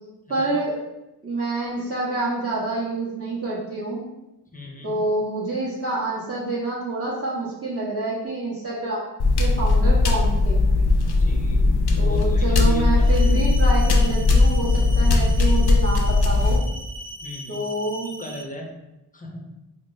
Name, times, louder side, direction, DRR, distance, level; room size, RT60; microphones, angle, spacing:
voice 1, 0.3-0.8 1.2-4.0 4.8-9.0 9.4-10.6 12.0-16.6 17.5-18.1, right 2 dB, 35° right, -7 dB, 1.2 m, -27 dB
voice 2, 4.5-5.1 11.0-13.1 17.2-17.6 18.2-18.8 19.1-19.5, left 1 dB, 20° left, 0 dB, 0.6 m, -38 dB
sound 1, 9.2-16.6, left 3 dB, 65° left, 0.6 m, -18 dB
sound 2, 13.0-18.4, equal, 50° right, 0.6 m, -40 dB
5.0 x 2.0 x 2.6 m, 0.94 s
cardioid pair, 60°, 41 cm